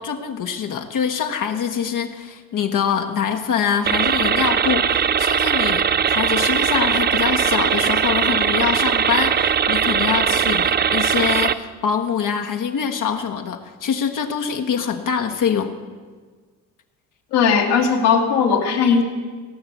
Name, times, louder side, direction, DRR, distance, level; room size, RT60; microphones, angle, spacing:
voice 1, 0.0-15.7, left 7 dB, 50° left, 4 dB, 1.2 m, -24 dB
sound 1, 3.9-11.5, right 7 dB, 25° right, 0.5 m, -19 dB
voice 2, 17.3-19.0, left 6 dB, 70° left, 1 dB, 2.0 m, -17 dB
17.0 x 6.0 x 8.1 m, 1.5 s
hypercardioid pair, 60°, 42 cm